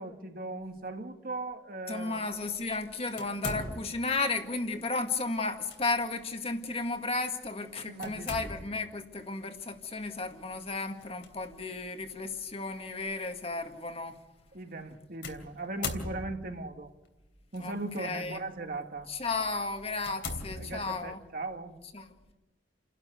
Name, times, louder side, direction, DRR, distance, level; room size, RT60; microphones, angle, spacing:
voice 1, 0.0-2.2 7.9-8.5 14.5-16.9 17.5-19.1 20.5-21.8, right 2 dB, 55° right, 1.8 m, -38 dB
voice 2, 1.9-14.2 17.6-18.4 19.1-21.2 21.9-22.2, left 3 dB, 35° left, 1.9 m, -34 dB
sound 1, 3.2-4.2 5.4-5.8 6.3-6.4 8.0-8.9 11.0-11.3 12.1-12.2 15.2-16.6 17.5-18.0 18.6-18.8 19.3-19.4 20.0-21.2, left 3 dB, 70° left, 3.1 m, -39 dB
30.0 x 12.0 x 8.1 m
head